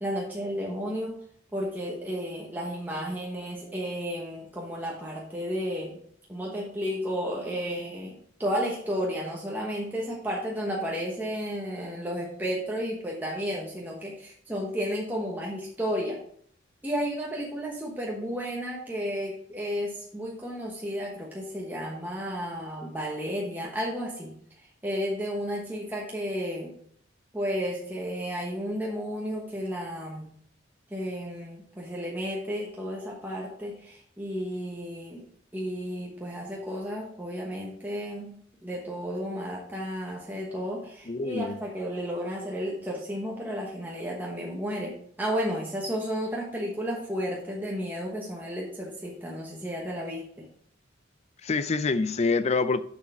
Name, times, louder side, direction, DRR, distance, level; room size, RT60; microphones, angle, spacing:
voice 1, 0.0-1.1 1.5-6.0 6.3-16.2 16.8-24.3 24.8-26.7 27.3-30.3 30.9-35.2 35.5-50.5, equal, 10° right, -3 dB, 1.1 m, -32 dB
voice 2, 41.1-41.6 51.4-52.8, left 4 dB, 35° left, 14 dB, 0.4 m, -26 dB
7.2 x 6.3 x 4.3 m, 0.63 s
head